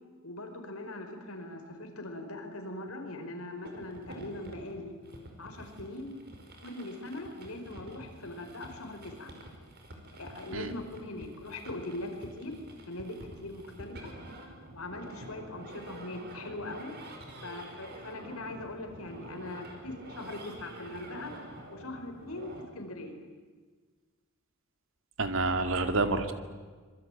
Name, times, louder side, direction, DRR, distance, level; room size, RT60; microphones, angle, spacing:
voice 1, 0.2-4.9 5.4-6.1 6.6-9.3 10.2-12.5 12.9-14.1 14.7-16.9 17.4-21.3 21.7-23.2, left 2 dB, 80° left, 5 dB, 4.9 m, -41 dB
sound 1, 3.6-22.6, right 1 dB, 50° right, 5.3 m, -48 dB
voice 2, 25.2-26.3, right 3 dB, 65° right, 8 dB, 2.2 m, -28 dB
25.5 x 23.0 x 9.2 m, 1.4 s
head